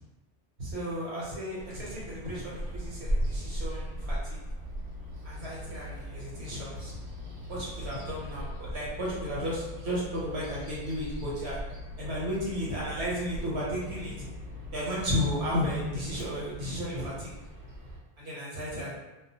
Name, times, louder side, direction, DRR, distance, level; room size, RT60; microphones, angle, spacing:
voice 1, 0.6-4.4 5.2-6.9 7.5-11.6 12.0-14.3 14.7-17.3 18.2-19.0, equal, 65° right, -6 dB, 1.1 m, -34 dB
Bird vocalization bird call bird song, 1.6-18.0, equal, 45° right, 0.8 m, -39 dB
sound 1, 4.6-16.0, left 4 dB, 60° left, 0.4 m, -45 dB
2.4 x 2.2 x 2.6 m, 1.1 s
omnidirectional pair, 1.2 m